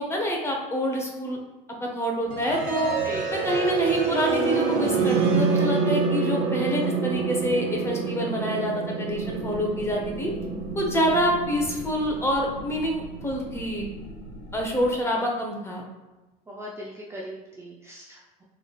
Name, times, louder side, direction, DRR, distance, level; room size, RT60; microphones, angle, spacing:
voice 1, 0.0-1.4 1.8-2.9 3.3-10.3 10.7-13.9 14.5-15.8, equal, 15° left, 0 dB, 0.8 m, -27 dB
sound 1, 2.3-14.2, right 4 dB, 50° right, 0.7 m, -27 dB
voice 2, 3.0-3.4 16.5-18.4, equal, 15° right, -4 dB, 0.5 m, -39 dB
sound 2, 9.1-14.9, left 1 dB, 65° left, 0.9 m, -42 dB
3.8 x 3.2 x 2.4 m, 1.1 s
supercardioid pair, 115°, 19 cm